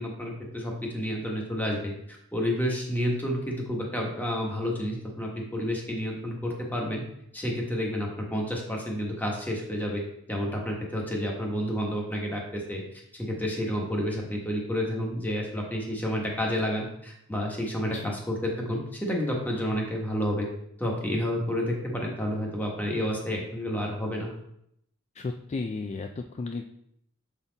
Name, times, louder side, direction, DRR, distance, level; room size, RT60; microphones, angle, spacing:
voice 1, 0.0-1.9 2.3-7.0 7.3-10.0 10.3-12.8 13.2-20.5 20.8-24.3, equal, 10° left, -1 dB, 1.2 m, -30 dB
voice 2, 25.1-26.6, left 3 dB, 30° left, 4 dB, 0.3 m, -34 dB
7.1 x 4.1 x 3.9 m, 0.74 s
head